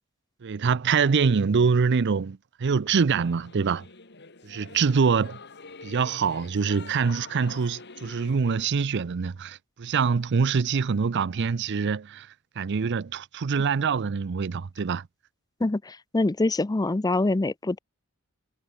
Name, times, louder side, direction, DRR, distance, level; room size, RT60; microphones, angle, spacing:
voice 1, 0.4-3.9 4.4-5.4 5.8-12.3 12.6-15.1, right 5 dB, 55° right, 0.5 m, -24 dB
Singing / Musical instrument, 3.2-8.7, left 4 dB, 55° left, 3.9 m, -46 dB
voice 2, 15.6-17.8, left 2 dB, 20° left, 0.5 m, -25 dB
head